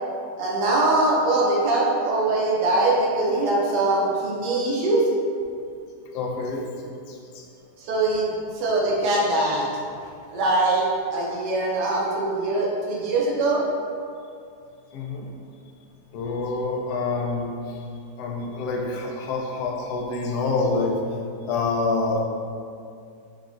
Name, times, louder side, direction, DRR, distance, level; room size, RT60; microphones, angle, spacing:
voice 1, 0.4-5.1 7.8-9.7 10.3-10.9 11.1-13.6, right 2 dB, 85° right, -4 dB, 1.3 m, -22 dB
voice 2, 6.1-6.6 7.1-7.4 14.9-15.3 16.1-17.8 18.2-21.0 21.4-22.2, left 3 dB, 75° left, 0 dB, 1.1 m, -27 dB
5.9 x 2.3 x 2.5 m, 2.4 s
omnidirectional pair, 1.8 m